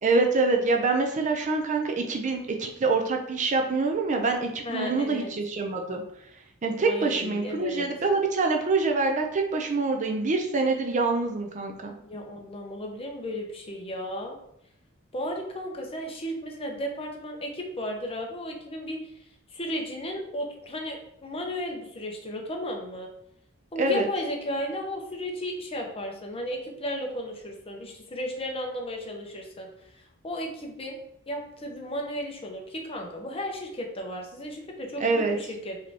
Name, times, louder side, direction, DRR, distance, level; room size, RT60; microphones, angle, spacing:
voice 1, 0.0-6.0 6.6-11.9 23.8-24.1 35.0-35.4, right 3 dB, 35° right, 3 dB, 0.4 m, -25 dB
voice 2, 4.6-5.3 6.9-7.9 12.0-14.4 15.1-23.1 23.7-31.0 31.3-35.8, equal, 25° left, 1 dB, 0.8 m, -34 dB
4.9 x 3.3 x 2.8 m, 0.74 s
head